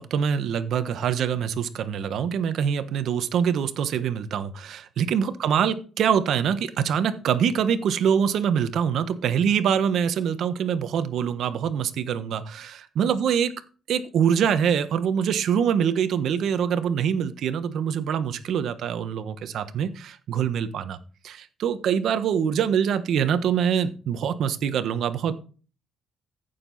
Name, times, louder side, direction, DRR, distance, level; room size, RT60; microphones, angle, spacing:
voice 1, 0.0-13.5 13.9-21.0 21.2-25.3, right 8 dB, 70° right, 11 dB, 1.2 m, -24 dB
15.0 x 6.9 x 4.1 m, 0.38 s
cardioid pair, 90°, 0 cm